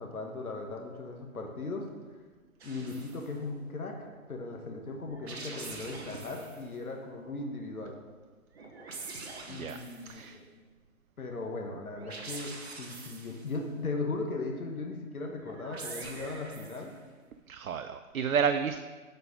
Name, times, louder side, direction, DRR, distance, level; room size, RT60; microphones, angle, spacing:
voice 1, 0.0-1.9 2.6-8.0 9.5-10.5 11.2-16.9, left 3 dB, 75° left, 2 dB, 1.5 m, -38 dB
sound 1, 2.6-3.3 5.1-6.7 8.5-10.2 11.9-13.6 15.4-17.0, right 3 dB, 45° right, 1.3 m, -44 dB
voice 2, 10.0-10.4 17.5-18.8, right 7 dB, 70° right, 9 dB, 0.6 m, -30 dB
7.8 x 5.3 x 5.2 m, 1.4 s
figure-of-eight pair, 150°, 44 cm